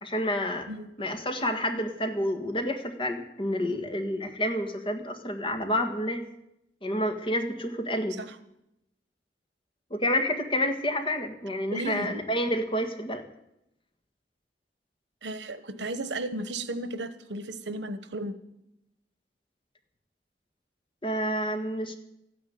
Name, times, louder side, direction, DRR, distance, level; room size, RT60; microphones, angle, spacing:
voice 1, 0.0-0.7 1.0-6.2 6.8-8.2 9.9-13.2 21.0-21.9, equal, 30° left, 5 dB, 1.7 m, -29 dB
voice 2, 11.7-12.2 15.2-18.3, right 2 dB, 85° right, 12 dB, 1.2 m, -34 dB
14.0 x 10.0 x 9.3 m, 0.82 s
head